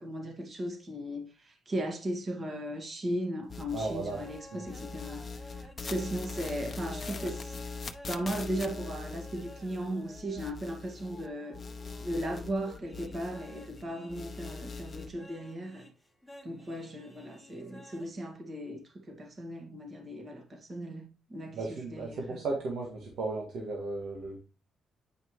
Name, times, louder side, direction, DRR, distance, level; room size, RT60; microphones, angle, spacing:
voice 1, 0.0-7.6 8.1-11.6 12.0-15.9 16.4-22.4, right 1 dB, 40° right, 2.2 m, -37 dB
sound 1, 3.5-4.4 4.7-11.3 11.5-13.8 14.1-15.1, left 4 dB, 35° left, 0.9 m, -42 dB
voice 2, 3.7-4.2 4.5-4.6 21.5-24.4, right 3 dB, 70° right, 2.0 m, -35 dB
sound 2, 4.1-18.1, left 1 dB, 5° right, 1.7 m, -52 dB
8.9 x 5.1 x 3.2 m
cardioid pair, 90°, 0 cm